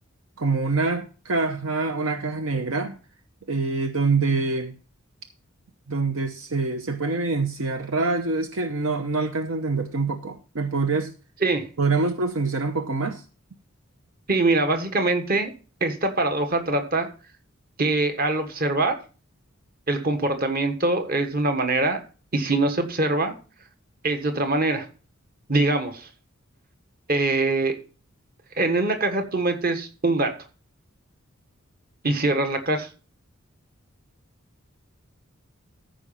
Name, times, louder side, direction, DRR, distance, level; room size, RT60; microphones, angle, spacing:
voice 1, 0.4-3.0 3.5-4.7 5.9-11.1 11.8-13.2, right 3 dB, 70° right, 0.9 m, -25 dB
voice 2, 14.3-15.5 15.8-17.1 17.8-18.9 19.9-22.0 22.3-23.3 24.0-24.8 25.5-26.1 27.1-27.7 28.6-30.4 32.0-32.9, right 2 dB, 45° right, 1.5 m, -23 dB
14.0 x 5.1 x 5.6 m
head